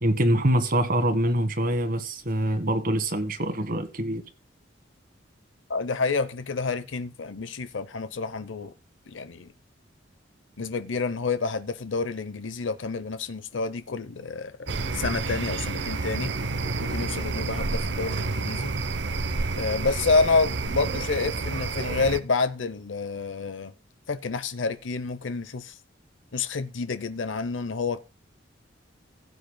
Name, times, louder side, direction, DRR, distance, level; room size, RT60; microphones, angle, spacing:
voice 1, 0.0-4.2, right 1 dB, 50° right, 1.4 m, -24 dB
voice 2, 5.7-8.7 9.1-9.5 10.6-16.3 16.8-18.7 19.6-23.7 24.1-25.8 26.3-28.0, left 4 dB, 85° left, 0.8 m, -28 dB
sound 1, 14.7-22.2, right 3 dB, 65° right, 0.7 m, -29 dB
16.5 x 8.0 x 2.2 m
head